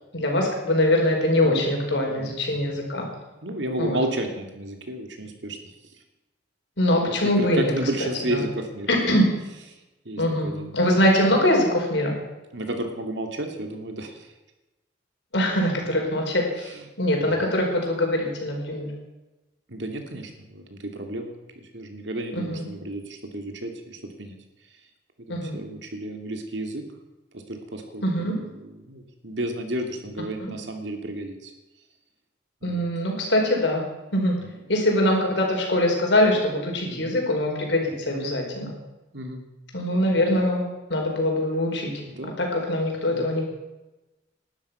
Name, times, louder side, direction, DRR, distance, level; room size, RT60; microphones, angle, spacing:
voice 1, 0.1-3.1 3.8-4.0 6.8-7.7 8.0-8.4 8.9-9.3 10.2-12.1 15.3-16.7 17.0-18.9 22.3-22.6 25.3-25.6 28.0-28.4 30.4-30.5 32.6-33.8 34.1-34.4 34.7-38.7 39.7-41.9 42.2-43.4, left 1 dB, 75° left, 1 dB, 4.9 m, -23 dB
voice 2, 3.4-5.6 7.1-8.9 9.7-9.8 10.0-10.7 12.5-14.3 16.7-16.9 17.2-17.4 19.7-24.3 25.2-26.8 27.3-28.3 28.6-31.5 32.6-32.9 34.4-34.5 36.8-37.2 38.1-38.4 39.1-39.5 42.1-42.4 43.1-43.3, right 1 dB, 75° right, 4 dB, 2.8 m, -32 dB
20.0 x 12.0 x 5.9 m, 1.1 s
head